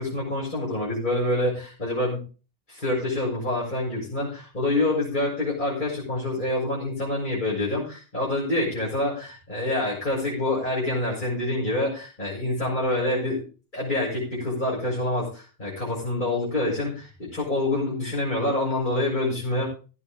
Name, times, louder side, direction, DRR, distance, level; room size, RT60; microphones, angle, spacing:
voice 1, 0.0-2.2 2.7-13.4 13.7-19.7, left 1 dB, 50° left, -7 dB, 7.1 m, -26 dB
15.5 x 9.4 x 3.7 m, 0.34 s
omnidirectional pair, 1.0 m